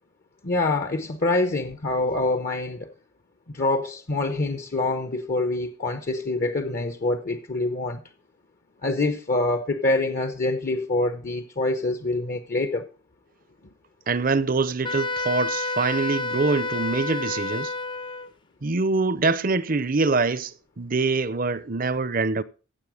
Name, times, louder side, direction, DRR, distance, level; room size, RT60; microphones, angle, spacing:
voice 1, 0.4-2.9 3.5-8.0 8.8-12.9, left 2 dB, 45° left, 0.9 m, -25 dB
voice 2, 14.1-17.7 18.6-22.4, right 3 dB, 40° right, 0.7 m, -24 dB
Wind instrument woodwind instrument, 14.8-18.3, left 2 dB, 25° left, 0.5 m, -29 dB
15.5 x 7.7 x 4.9 m
head